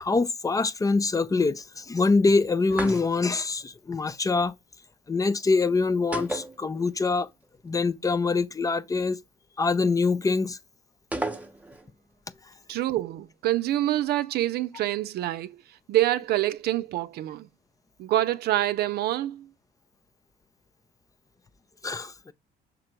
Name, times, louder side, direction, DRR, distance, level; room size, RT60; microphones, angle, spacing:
voice 1, 0.0-4.5 5.1-7.3 7.6-9.2 9.6-10.6 21.8-22.3, left 3 dB, 20° left, 0.6 m, -24 dB
sound 1, 2.7-3.4 6.1-7.2 7.4-7.5 11.1-11.9, right 2 dB, 10° right, 0.9 m, -33 dB
voice 2, 12.7-15.6 15.9-17.5 18.0-19.5, right 14 dB, 70° right, 0.6 m, -26 dB
6.4 x 3.8 x 4.6 m
cardioid pair, 110°, 17 cm